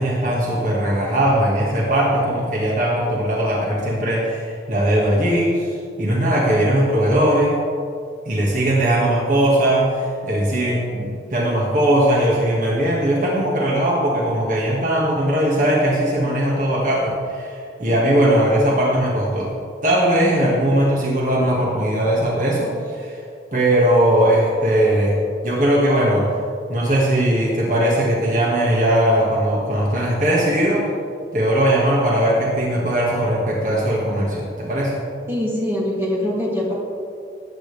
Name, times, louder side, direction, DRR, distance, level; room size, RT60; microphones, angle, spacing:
voice 1, 0.0-7.5 8.3-19.5 19.8-23.2 23.5-26.3 26.7-30.9 31.3-35.0, right 1 dB, 45° right, -4 dB, 1.9 m, -19 dB
voice 2, 35.3-36.7, left 1 dB, 15° right, -6 dB, 2.8 m, -23 dB
19.0 x 9.1 x 3.5 m, 2.3 s
head